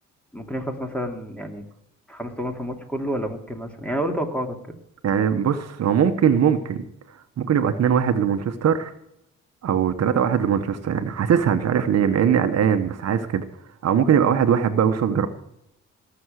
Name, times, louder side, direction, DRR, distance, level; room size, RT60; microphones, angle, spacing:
voice 1, 0.3-1.6 2.1-4.6, equal, 5° left, 5 dB, 2.5 m, -29 dB
voice 2, 5.0-8.9 9.6-13.4 13.8-15.3, right 8 dB, 60° right, 9 dB, 1.2 m, -21 dB
18.0 x 7.1 x 6.5 m, 0.78 s
cardioid pair, 90°, 30 cm